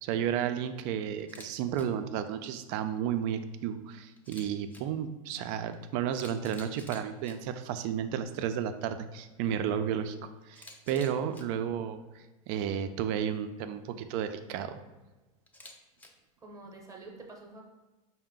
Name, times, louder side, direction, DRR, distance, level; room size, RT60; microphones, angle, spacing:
voice 1, 0.0-14.8, right 9 dB, 55° right, 9 dB, 0.4 m, -33 dB
Camera, 1.2-1.5 1.7-1.8 4.2-4.8 5.7-5.8 6.1-7.3 10.5-11.4 15.5-16.1, left 2 dB, 10° left, 0.4 m, -50 dB
voice 2, 16.4-17.6, right 2 dB, 20° right, 0 dB, 0.8 m, -48 dB
4.5 x 2.1 x 3.7 m, 1.1 s
supercardioid pair, 115°, 18 cm